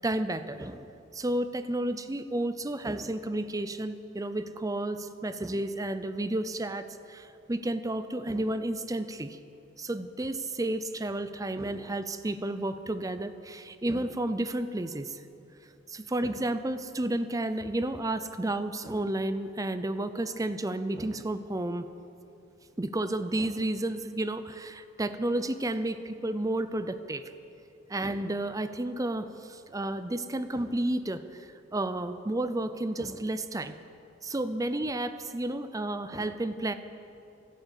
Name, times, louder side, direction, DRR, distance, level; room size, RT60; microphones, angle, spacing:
voice 1, 0.0-9.4 9.8-15.2 15.9-21.9 22.8-27.3 27.9-33.8 34.2-36.7, right 1 dB, 20° right, 11 dB, 0.6 m, -32 dB
12.0 x 12.0 x 8.4 m, 2.7 s
head